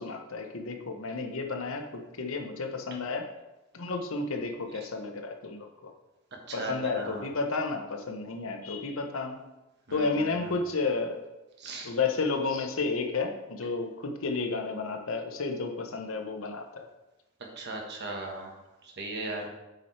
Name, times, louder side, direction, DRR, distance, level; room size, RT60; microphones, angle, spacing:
voice 1, 0.0-3.3 3.7-5.9 6.5-9.4 9.9-11.2 11.8-16.9, left 4 dB, 70° left, 4 dB, 0.9 m, -32 dB
voice 2, 6.5-7.3 9.9-10.3 11.6-11.9 17.6-18.5 18.8-19.5, right 2 dB, 50° right, 1 dB, 1.2 m, -37 dB
7.9 x 4.4 x 4.3 m, 1.0 s
head